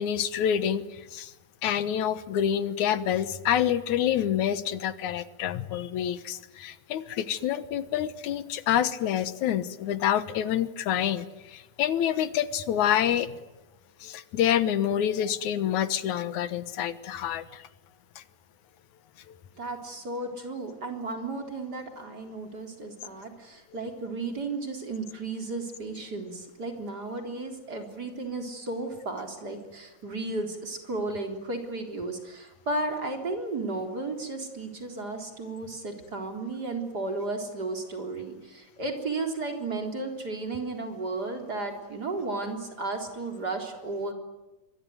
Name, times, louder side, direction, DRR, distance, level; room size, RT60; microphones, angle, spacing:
voice 1, 0.0-1.3 1.6-13.3 14.0-17.7 18.2-18.3 19.3-19.4, left 10 dB, 75° left, 13 dB, 2.6 m, -27 dB
voice 2, 19.6-44.1, right 3 dB, 30° right, 4 dB, 4.3 m, -34 dB
26.5 x 23.0 x 9.5 m, 1.1 s
omnidirectional pair, 3.4 m